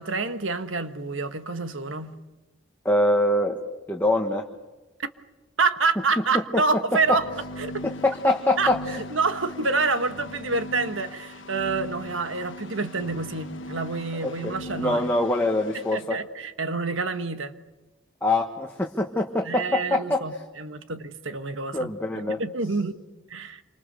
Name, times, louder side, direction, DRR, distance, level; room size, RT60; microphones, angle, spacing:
voice 1, 0.0-2.1 5.6-7.3 7.6-7.7 8.6-15.1 15.9-17.6 19.4-21.9 22.2-22.9 23.3-23.6, right 4 dB, 80° right, 1.5 m, -27 dB
voice 2, 2.8-3.6 3.9-4.4 6.5-6.6 7.1-7.2 8.0-9.0 14.2-16.2 18.2-20.2 21.7-22.4, left 1 dB, 10° left, 1.4 m, -24 dB
sound 1, 6.9-16.0, left 1 dB, 75° left, 1.2 m, -39 dB
27.5 x 26.0 x 6.9 m
head